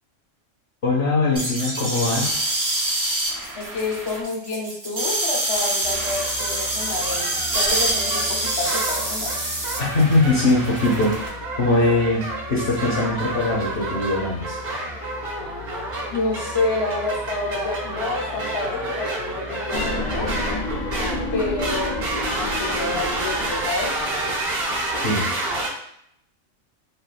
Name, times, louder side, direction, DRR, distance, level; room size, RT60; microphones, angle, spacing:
voice 1, 0.8-2.4 9.9-11.1 11.6-12.2 12.5-14.6 25.0-25.3, left 2 dB, 55° left, -4 dB, 0.8 m, -21 dB
sound 1, 1.4-11.3, right 1 dB, 35° right, 0.3 m, -26 dB
voice 2, 3.5-9.4 16.1-20.3 21.3-24.0, left 3 dB, 35° left, -1 dB, 0.4 m, -28 dB
sound 2, 5.8-25.7, right 1 dB, 60° right, 0.9 m, -29 dB
sound 3, 19.7-24.7, left 2 dB, 85° left, 1.0 m, -30 dB
3.5 x 2.3 x 2.4 m, 0.72 s
omnidirectional pair, 1.3 m